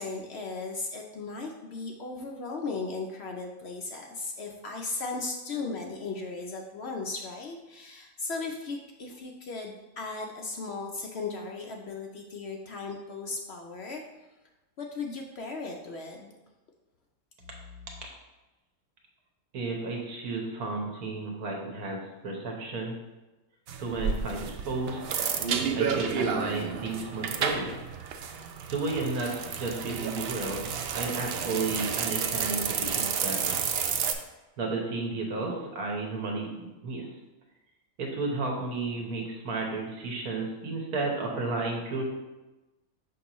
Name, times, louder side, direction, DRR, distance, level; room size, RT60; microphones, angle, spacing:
voice 1, 0.0-14.0 14.8-16.3, left 3 dB, 65° left, 1 dB, 0.7 m, -36 dB
voice 2, 19.5-23.0 23.8-25.0 25.7-27.7 28.7-33.6 34.6-37.1 38.0-42.0, right 3 dB, 90° right, 0 dB, 1.6 m, -32 dB
sound 1, 23.7-34.1, right 6 dB, 70° right, 0.6 m, -31 dB
6.0 x 5.4 x 3.0 m, 1.1 s
omnidirectional pair, 1.5 m